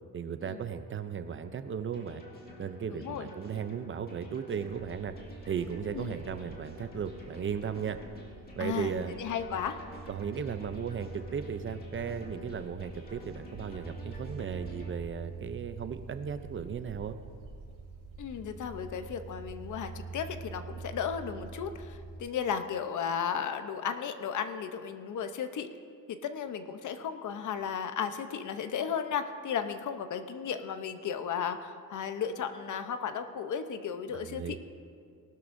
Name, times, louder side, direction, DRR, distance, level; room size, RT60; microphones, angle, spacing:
voice 1, 0.1-2.2 2.6-5.1 5.5-8.0 8.5-9.1 10.1-17.2 34.1-34.6, right 7 dB, 35° right, 10 dB, 0.5 m, -36 dB
sound 1, 1.9-14.9, left 2 dB, 25° left, 2.1 m, -50 dB
voice 2, 2.9-3.3 5.9-6.2 8.6-8.9 9.2-9.8 18.2-25.7 26.1-34.6, left 7 dB, 55° left, 9 dB, 0.8 m, -34 dB
sound 2, 4.6-22.2, right 3 dB, 65° right, 3.6 m, -45 dB
19.5 x 12.5 x 2.6 m, 2.3 s
cardioid pair, 135°, 35 cm